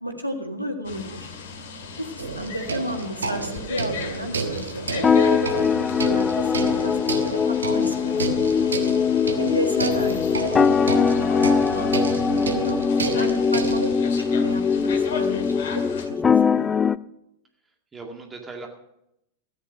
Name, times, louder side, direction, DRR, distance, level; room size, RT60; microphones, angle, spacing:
voice 1, 0.0-1.3 2.0-8.7 9.4-12.8 13.1-13.9 14.2-15.5 16.1-16.7, equal, 90° left, 3 dB, 1.8 m, -32 dB
sound 1, 0.8-16.1, left 6 dB, 55° left, 2.0 m, -38 dB
sound 2, 2.2-13.9, right 4 dB, 70° right, 1.3 m, -31 dB
voice 2, 2.4-2.8 11.6-12.0 17.7-18.7, right 3 dB, 15° right, 3 dB, 2.0 m, -41 dB
sound 3, 5.0-17.0, left 6 dB, 15° left, 0.4 m, -21 dB
14.0 x 10.0 x 6.2 m, 0.82 s
figure-of-eight pair, 90°, 0 cm